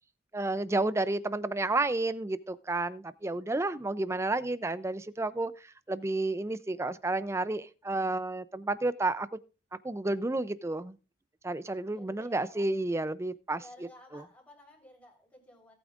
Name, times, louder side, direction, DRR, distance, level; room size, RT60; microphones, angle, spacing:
voice 1, 0.3-9.3 9.7-11.0 11.4-13.6 14.1-14.2, right 2 dB, 15° right, 15 dB, 0.4 m, -31 dB
voice 2, 11.9-12.5 13.6-15.7, left 1 dB, 10° left, -1 dB, 3.9 m, -54 dB
18.0 x 8.6 x 2.4 m, 0.33 s
head